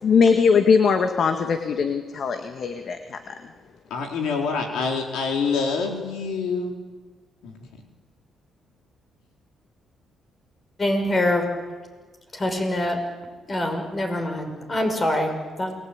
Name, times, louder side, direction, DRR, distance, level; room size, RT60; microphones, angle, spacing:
voice 1, 0.0-3.3, left 5 dB, 55° left, 6 dB, 1.9 m, -20 dB
voice 2, 3.9-6.7 7.4-7.6, left 5 dB, 85° left, 2 dB, 4.3 m, -26 dB
voice 3, 10.8-11.4 12.3-13.0 13.5-15.7, left 1 dB, 30° left, 5 dB, 5.9 m, -24 dB
28.5 x 21.0 x 9.0 m, 1.4 s
cardioid pair, 90°, 0 cm